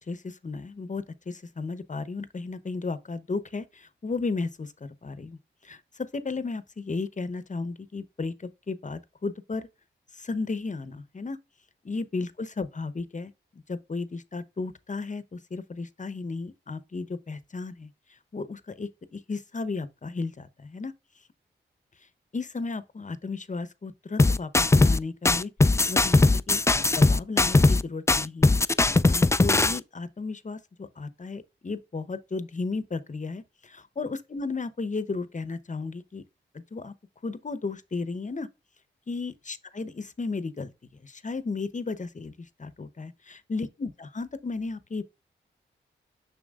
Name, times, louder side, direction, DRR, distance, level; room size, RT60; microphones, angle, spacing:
voice 1, 0.1-9.7 10.1-11.4 11.8-20.9 22.3-25.5 25.9-28.6 29.1-36.2 36.5-36.9 37.2-38.5 39.1-45.0, left 3 dB, 40° left, 0.9 m, -34 dB
sound 1, 24.2-25.0 25.3-27.8 28.1-29.8, left 2 dB, 15° left, 0.3 m, -20 dB
7.1 x 5.8 x 2.4 m
cardioid pair, 45°, 20 cm